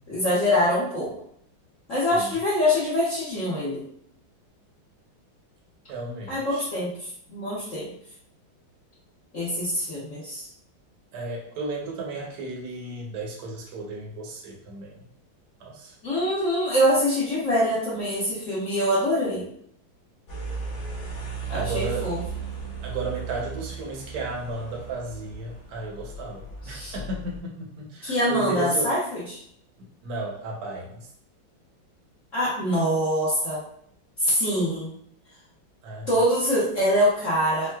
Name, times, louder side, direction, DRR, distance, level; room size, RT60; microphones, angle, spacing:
voice 1, 0.1-1.1 1.9-3.8 6.3-7.9 9.3-10.5 16.0-19.4 21.5-22.2 26.6-26.9 28.0-29.4 32.3-33.6 34.2-34.9 36.1-37.7, equal, 50° left, -10 dB, 1.0 m, -24 dB
voice 2, 5.9-6.7 11.1-15.1 15.6-15.9 21.5-22.1 22.8-28.9 29.8-31.1 35.8-36.1, right 2 dB, 60° right, -1 dB, 1.1 m, -34 dB
sound 1, 20.3-27.4, right 5 dB, 90° left, 0.6 m, -36 dB
4.4 x 2.1 x 2.3 m, 0.66 s
omnidirectional pair, 2.3 m